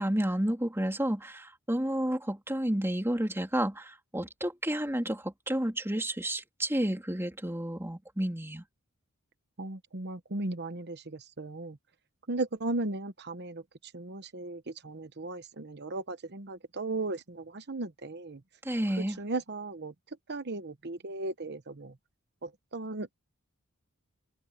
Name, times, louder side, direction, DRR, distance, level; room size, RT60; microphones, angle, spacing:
voice 1, 0.0-8.6 18.6-19.2, right 1 dB, 10° right, 3.2 m, -31 dB
voice 2, 9.6-11.8 12.3-18.4 18.9-19.9 20.3-21.9 22.4-23.1, right 2 dB, 50° right, 1.1 m, -36 dB
head